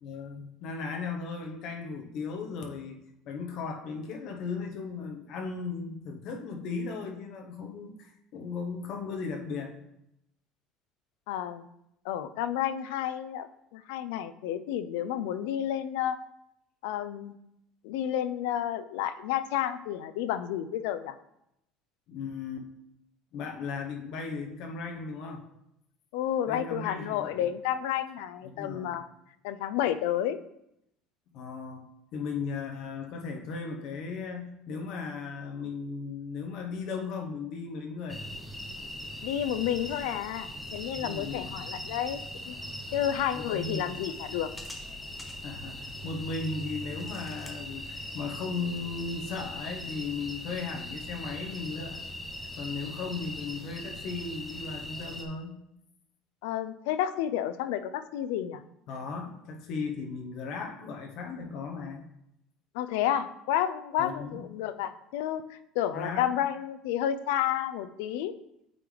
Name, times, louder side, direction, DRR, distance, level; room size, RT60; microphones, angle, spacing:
voice 1, 0.0-9.8 22.1-22.7 23.3-25.5 26.5-27.5 28.4-29.0 31.3-31.8 32.1-38.2 41.0-41.8 42.8-44.0 45.4-52.0 52.5-55.6 58.9-62.0 64.0-64.5 65.9-66.3, left 4 dB, 55° left, 3 dB, 0.9 m, -37 dB
voice 2, 11.3-11.7 12.0-13.5 13.7-16.2 16.8-17.4 17.8-21.2 26.1-29.0 29.4-30.4 39.2-42.2 42.5-42.6 42.9-44.5 56.4-58.6 62.7-68.3, left 11 dB, 90° left, 12 dB, 0.4 m, -31 dB
sound 1, 38.1-55.3, left 1 dB, 5° left, 0.7 m, -40 dB
8.7 x 3.9 x 3.2 m, 0.81 s
cardioid pair, 155°, 0 cm